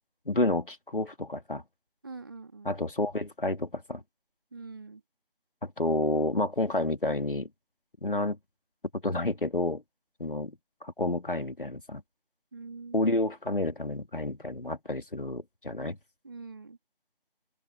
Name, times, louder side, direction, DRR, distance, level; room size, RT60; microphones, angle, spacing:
voice 1, 0.3-1.6 2.6-4.0 5.6-7.5 8.0-8.4 8.9-9.8 10.2-10.6 10.8-12.0 12.9-16.0, left 2 dB, 60° left, 3.0 m, -30 dB
voice 2, 2.0-2.8 4.5-5.0 12.5-13.1 16.2-16.8, right 4 dB, 20° right, 3.2 m, -44 dB
open air
figure-of-eight pair, 165°, 30 cm